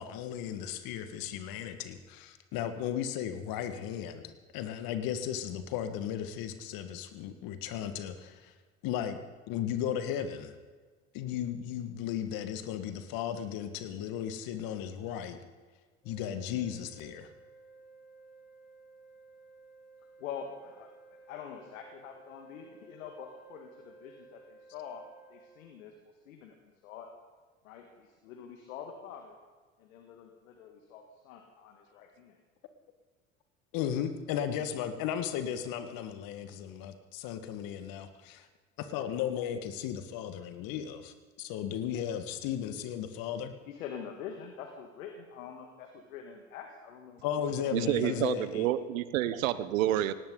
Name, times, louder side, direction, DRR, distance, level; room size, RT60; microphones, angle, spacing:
voice 1, 0.0-8.5 8.8-9.2 9.5-10.6 11.1-15.4 16.0-17.3 33.7-38.5 38.8-43.5 47.2-48.7, left 9 dB, 55° left, 8 dB, 1.7 m, -35 dB
sound 1, 16.0-25.7, right 3 dB, ahead, 5.5 m, -56 dB
voice 2, 20.2-25.0 25.3-26.6 26.8-27.1 27.6-29.4 29.8-32.4 43.7-47.2 47.8-48.5, left 7 dB, 75° left, 4 dB, 1.8 m, -45 dB
voice 3, 47.7-50.1, right 13 dB, 75° right, 14 dB, 1.0 m, -29 dB
18.0 x 17.5 x 3.9 m, 1.4 s
hypercardioid pair, 75°, 41 cm